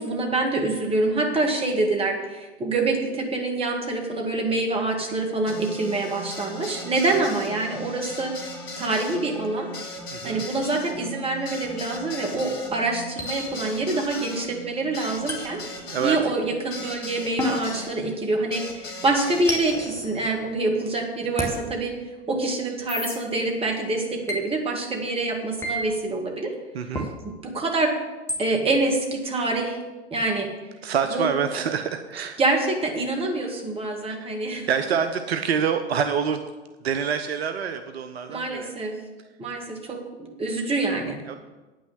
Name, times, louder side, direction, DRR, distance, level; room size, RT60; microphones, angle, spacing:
voice 1, 0.0-8.4 8.8-9.7 10.2-15.6 16.0-21.9 22.3-26.5 27.2-27.9 28.4-29.8 30.1-30.5 31.1-31.3 32.4-34.7 38.3-39.0 39.4-41.2, right 2 dB, 15° right, 1 dB, 2.2 m, -26 dB
sound 1, 5.5-17.9 18.5-19.8, left 1 dB, 50° left, 2.7 m, -38 dB
voice 2, 10.1-10.4 15.8-16.2 26.7-27.1 30.8-32.4 34.1-34.3 34.7-36.5 36.8-38.7 41.3-41.4, right 7 dB, 65° right, 8 dB, 0.8 m, -26 dB
sound 2, 11.3-11.5 13.2-13.9 15.3-16.3 17.4-18.7 19.5-20.8 21.4-21.6 22.9-23.2 24.3-24.4 25.6-25.8 26.9-27.1 28.3-28.5, left 1 dB, 5° left, 2.0 m, -32 dB
9.2 x 6.2 x 8.3 m, 1.2 s
figure-of-eight pair, 90°, 34 cm